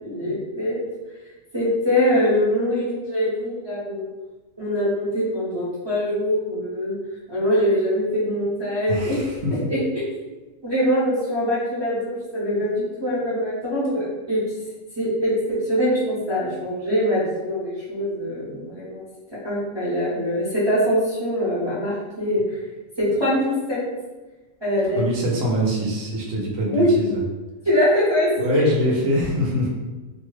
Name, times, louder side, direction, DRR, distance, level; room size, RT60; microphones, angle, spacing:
voice 1, 0.0-0.8 1.5-4.1 4.6-6.9 7.3-9.2 9.7-10.0 10.6-14.4 15.0-19.0 19.4-22.6 23.0-23.8 24.6-25.0 26.7-26.9 27.7-28.6, equal, 30° right, -10 dB, 0.6 m, -23 dB
voice 2, 8.9-9.6 25.0-27.2 28.4-29.7, equal, 75° right, -2 dB, 1.1 m, -24 dB
2.8 x 2.1 x 3.1 m, 1.2 s
omnidirectional pair, 1.4 m